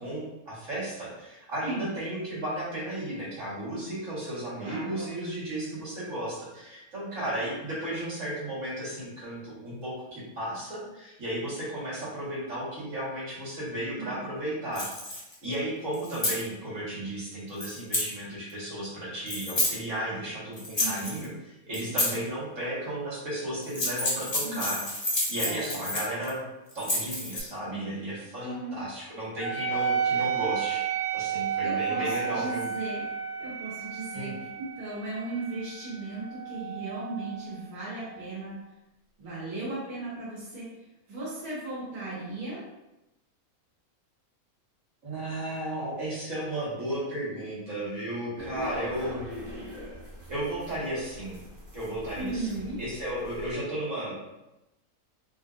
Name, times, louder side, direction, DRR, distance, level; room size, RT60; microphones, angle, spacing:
voice 1, 0.0-14.9 15.4-24.8 25.3-26.4 26.7-30.9 31.1-32.6 34.1-34.4 45.0-49.3 50.3-51.4 51.7-54.1, right 1 dB, 60° right, -9 dB, 2.0 m, -34 dB
voice 2, 4.6-5.1 14.0-14.2 20.7-21.1 24.4-24.7 25.4-25.9 27.7-28.0 28.4-28.8 31.6-33.0 33.4-38.5 39.2-40.8 41.1-42.6 52.2-52.8, right 2 dB, 90° right, -8 dB, 1.7 m, -36 dB
sound 1, 14.8-15.3 15.9-16.4 17.6-18.1 19.3-19.7 20.6-21.2 21.7-22.2 23.6-26.3 26.7-27.4, left 1 dB, 35° left, 0.4 m, -29 dB
Wind instrument woodwind instrument, 29.4-38.3, right 7 dB, 65° left, 1.1 m, -32 dB
sound 2, 48.4-53.5, equal, 40° right, 1.2 m, -42 dB
4.0 x 2.7 x 2.5 m, 0.95 s
omnidirectional pair, 1.5 m